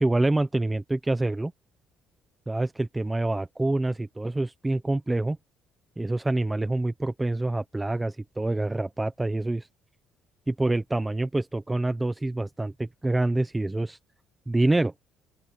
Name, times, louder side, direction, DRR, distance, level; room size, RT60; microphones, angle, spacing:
voice 1, 0.0-1.5 2.5-5.4 6.0-9.7 10.5-14.0 14.5-14.9, right 2 dB, 15° right, 1.0 m, -26 dB
open air
cardioid pair, 95°, 0 cm